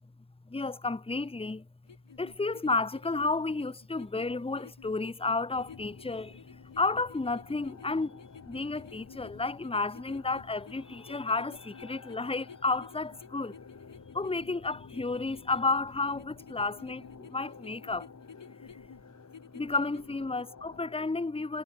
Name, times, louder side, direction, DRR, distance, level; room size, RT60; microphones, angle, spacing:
voice 1, 0.5-1.7 2.2-13.6 14.1-18.1 18.6-18.8 19.5-21.6, left 3 dB, 15° left, 0.8 m, -32 dB
sound 1, 1.9-20.4, left 6 dB, 85° left, 3.5 m, -53 dB
sound 2, 5.5-20.9, left 5 dB, 40° left, 1.3 m, -52 dB
wide cardioid pair, 120°, 42 cm